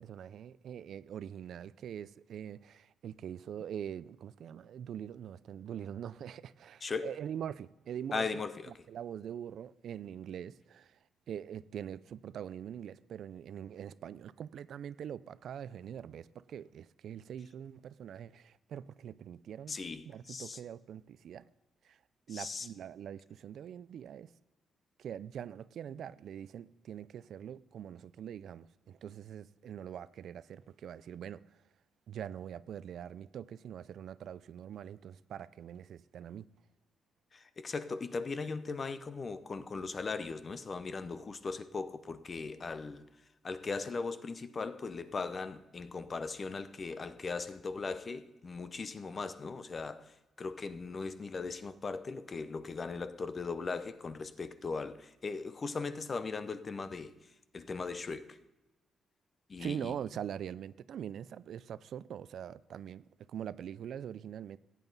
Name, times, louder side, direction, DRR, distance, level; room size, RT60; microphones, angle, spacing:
voice 1, 0.0-11.0 11.3-19.8 20.0-21.4 21.8-22.0 22.3-24.3 25.0-31.4 32.1-36.5 59.6-64.6, right 9 dB, 65° right, 0.4 m, -43 dB
voice 2, 8.1-8.7 19.7-20.6 22.3-22.7 37.3-43.0 43.4-57.1 57.5-58.4 59.5-59.9, left 4 dB, 30° left, 0.6 m, -38 dB
16.0 x 9.1 x 4.0 m
cardioid pair, 135°, 0 cm